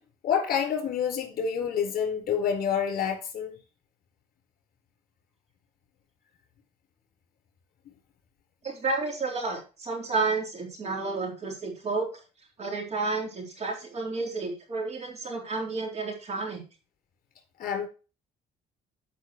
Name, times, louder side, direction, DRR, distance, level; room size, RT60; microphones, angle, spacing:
voice 1, 0.2-3.6 17.6-17.9, left 7 dB, 60° left, 4.2 m, -28 dB
voice 2, 8.6-12.1 12.6-16.6, right 3 dB, 40° right, 3.9 m, -31 dB
12.5 x 5.9 x 3.1 m
cardioid pair, 110°, 17 cm